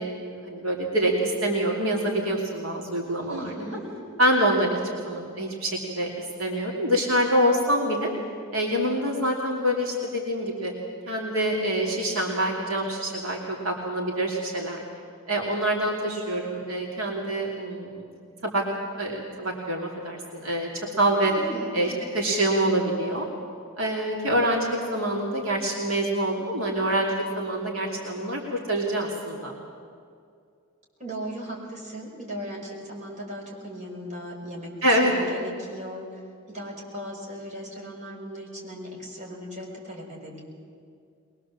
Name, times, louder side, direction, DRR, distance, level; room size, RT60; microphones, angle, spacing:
voice 1, 0.0-3.6 4.2-8.1 8.5-10.7 11.1-14.8 15.3-18.1 18.4-18.6 19.0-20.7 21.0-21.3 21.7-23.3 23.8-29.5 34.8-35.1, right 1 dB, 75° right, -1 dB, 2.9 m, -26 dB
voice 2, 3.3-3.8 21.2-22.2 31.0-36.2 36.5-40.4, equal, 35° right, -3 dB, 5.4 m, -37 dB
22.5 x 21.5 x 7.6 m, 2.3 s
head